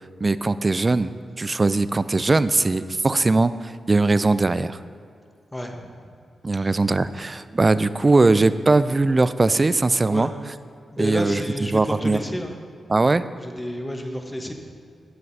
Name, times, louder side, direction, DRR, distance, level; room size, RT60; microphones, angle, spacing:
voice 1, 0.2-4.8 6.4-10.3 11.0-11.4 11.7-12.2 12.9-13.2, right 3 dB, 35° right, 14 dB, 0.3 m, -20 dB
voice 2, 5.5-6.1 10.1-10.4 10.9-12.6 13.3-14.5, equal, 15° left, 3 dB, 1.2 m, -30 dB
12.0 x 7.7 x 2.8 m, 2.3 s
supercardioid pair, 45°, 0 cm